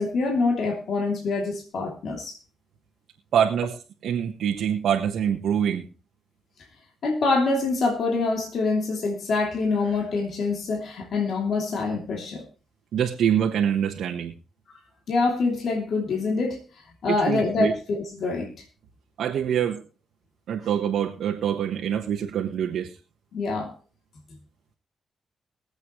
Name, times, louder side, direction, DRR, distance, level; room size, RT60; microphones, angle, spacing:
voice 1, 0.0-2.4 7.0-12.4 15.1-18.5 23.3-23.7, left 3 dB, 70° left, 2 dB, 2.9 m, -25 dB
voice 2, 3.3-5.9 12.9-14.3 17.1-17.7 19.2-19.8 20.5-23.0, right 9 dB, 80° right, 1 dB, 1.3 m, -25 dB
22.5 x 8.1 x 3.1 m, 0.33 s
cardioid pair, 60°, 0 cm